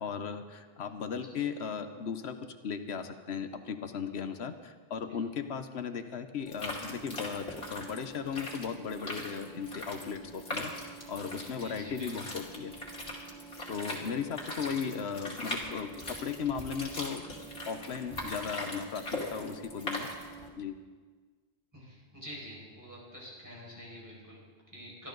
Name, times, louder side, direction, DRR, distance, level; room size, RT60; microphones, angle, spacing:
voice 1, 0.0-12.7 13.7-17.2 17.6-20.1 20.6-20.8, left 6 dB, 85° left, 9 dB, 1.1 m, -37 dB
sound 1, 6.5-20.5, equal, 70° left, 3.0 m, -41 dB
voice 2, 11.6-12.1 14.6-14.8 21.7-25.1, equal, 15° right, -5 dB, 5.4 m, -47 dB
24.0 x 13.0 x 3.9 m, 1.4 s
omnidirectional pair, 1.1 m